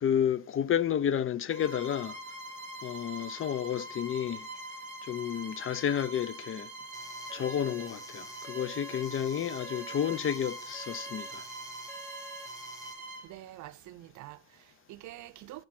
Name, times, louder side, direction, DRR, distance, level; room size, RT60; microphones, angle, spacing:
voice 1, 0.0-2.2 2.8-4.4 5.0-6.7 7.3-11.4, left 9 dB, 45° left, 0.5 m, -31 dB
Bowed string instrument, 1.5-13.3, right 1 dB, 25° right, 1.7 m, -43 dB
sound 1, 6.9-12.9, right 2 dB, 10° left, 1.1 m, -49 dB
voice 2, 13.2-15.6, right 15 dB, 75° right, 0.5 m, -47 dB
7.4 x 4.5 x 5.9 m
cardioid pair, 90°, 30 cm